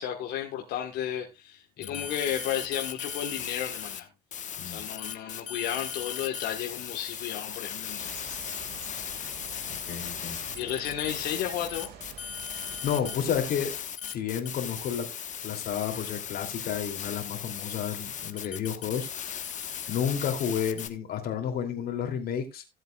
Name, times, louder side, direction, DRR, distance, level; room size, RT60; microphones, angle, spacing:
voice 1, 0.0-4.1 4.6-8.2 10.5-11.9, left 10 dB, 85° left, 1.3 m, -33 dB
sound 1, 1.8-4.0 4.3-20.9, left 8 dB, 45° left, 1.2 m, -37 dB
sound 2, 8.0-13.5, right 7 dB, 70° right, 2.0 m, -47 dB
voice 2, 9.7-10.4 12.5-13.7 14.1-15.1 15.4-19.5 19.9-22.6, left 8 dB, 65° left, 2.7 m, -31 dB
16.0 x 7.8 x 2.3 m
cardioid pair, 110°, 17 cm